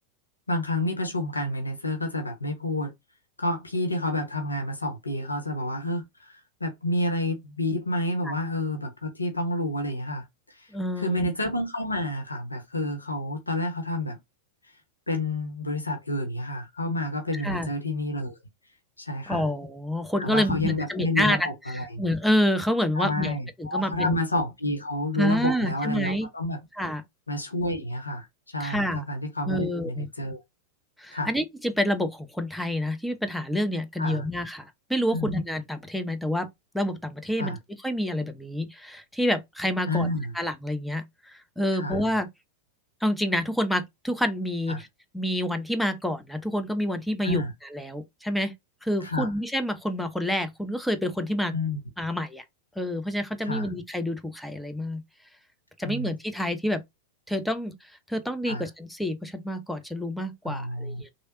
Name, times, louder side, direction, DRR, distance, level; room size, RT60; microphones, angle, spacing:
voice 1, 0.5-2.9 3.4-10.7 11.0-14.2 15.1-18.4 19.0-19.4 20.2-22.0 22.9-26.6 27.3-28.3 28.5-30.4 31.1-31.3 34.0-34.2 35.1-35.3 37.4-37.6 39.9-40.3 41.7-42.0 44.7-44.8 47.2-47.5 49.0-49.3 51.5-51.8 53.4-53.7 55.8-56.1 58.4-58.7 60.5-61.0, left 1 dB, 80° left, 0.7 m, -29 dB
voice 2, 10.7-11.3 17.3-17.7 19.3-21.5 22.0-24.2 25.2-26.3 26.8-27.0 28.6-29.0 29.5-30.1 31.0-36.5 36.7-37.5 37.8-40.1 40.3-42.3 43.0-44.9 45.1-47.4 47.7-48.5 48.8-51.5 52.0-52.4 52.8-55.0 55.8-56.8 57.3-57.8 58.1-61.1, equal, ahead, 0.6 m, -28 dB
3.2 x 2.7 x 2.6 m
figure-of-eight pair, 90°, 0 cm